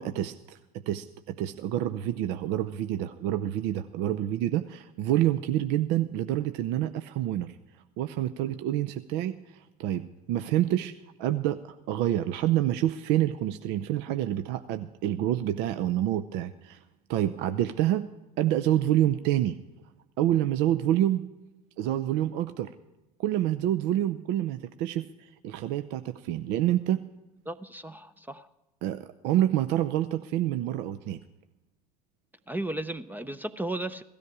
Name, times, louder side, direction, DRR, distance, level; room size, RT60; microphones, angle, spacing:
voice 1, 0.0-7.6 8.0-10.9 11.2-16.8 17.1-18.1 18.4-19.6 20.2-21.3 21.8-22.7 23.2-27.0 28.8-31.2, right 12 dB, 55° right, 10 dB, 0.6 m, -27 dB
voice 2, 27.5-28.5 32.5-34.0, right 1 dB, 10° right, 12 dB, 0.6 m, -34 dB
17.0 x 13.0 x 4.8 m, 1.0 s
hypercardioid pair, 75°, 21 cm